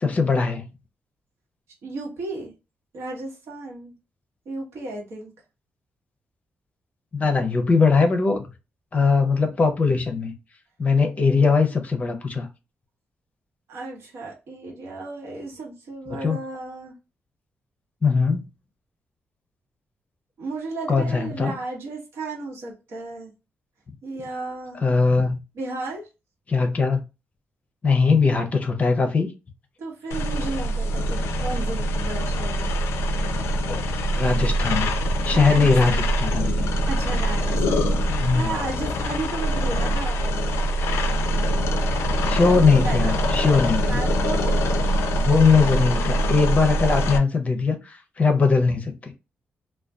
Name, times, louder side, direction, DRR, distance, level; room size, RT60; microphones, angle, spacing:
voice 1, 0.0-0.7 7.1-8.5 8.9-10.3 10.8-12.5 16.2-16.4 18.0-18.4 20.9-21.6 24.8-25.4 26.5-27.0 27.8-29.3 33.7-33.8 34.1-34.9 35.2-36.7 38.2-38.6 42.3-44.0 45.1-49.1, left 4 dB, 35° left, 0.5 m, -20 dB
voice 2, 1.8-2.5 2.9-3.9 4.5-5.3 13.7-17.0 20.4-23.3 24.0-24.8 25.5-26.1 29.8-32.7 35.3-36.1 36.9-40.2 42.4-43.2 43.8-44.6, right 3 dB, 85° right, 1.0 m, -34 dB
sound 1, 30.1-47.2, equal, 90° left, 0.3 m, -24 dB
2.5 x 2.2 x 2.2 m
cardioid pair, 115°, 4 cm